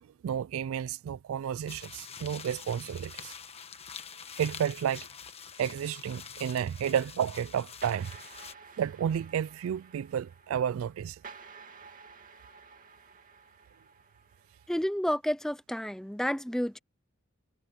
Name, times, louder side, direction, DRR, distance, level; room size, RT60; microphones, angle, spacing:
voice 1, 0.0-3.3 4.4-5.1 5.6-8.1 8.8-11.2, right 8 dB, 80° right, 0.3 m, -31 dB
sound 1, 1.7-8.5, left 7 dB, 30° left, 1.3 m, -46 dB
sound 2, 7.8-14.7, right 5 dB, 40° right, 2.4 m, -52 dB
voice 2, 14.7-16.8, equal, ahead, 0.5 m, -30 dB
head